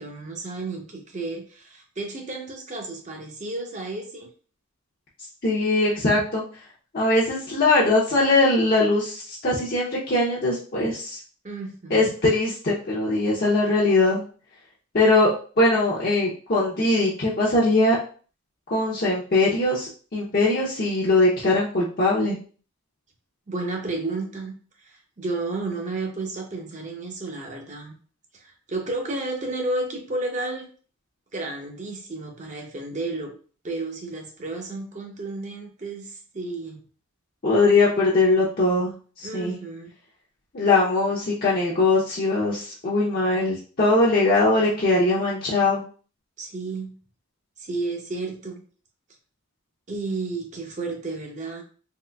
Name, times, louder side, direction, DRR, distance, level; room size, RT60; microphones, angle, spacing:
voice 1, 0.0-4.3 11.4-12.1 23.5-27.9 28.3-30.7 31.3-33.3 33.6-36.9 39.2-39.9 46.4-47.0 47.6-48.6 49.9-51.6, right 2 dB, 35° right, 2 dB, 0.7 m, -32 dB
voice 2, 5.4-6.4 6.9-11.2 11.9-14.2 14.9-15.3 15.6-18.0 18.7-22.4 37.4-39.6 40.5-45.8, left 2 dB, 40° left, -6 dB, 0.6 m, -21 dB
3.7 x 3.0 x 2.2 m, 0.40 s
head